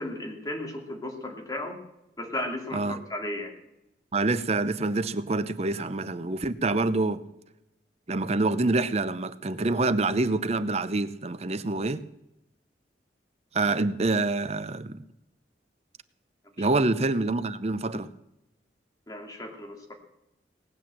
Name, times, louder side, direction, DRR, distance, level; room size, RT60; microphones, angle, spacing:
voice 1, 0.0-1.8 2.2-3.5 5.8-5.9 16.6-16.7 19.1-19.9, left 1 dB, 20° left, 2.7 m, -35 dB
voice 2, 4.1-7.2 8.1-12.0 13.5-15.0 16.6-18.1, right 2 dB, 35° right, 0.7 m, -26 dB
19.0 x 9.0 x 7.6 m
head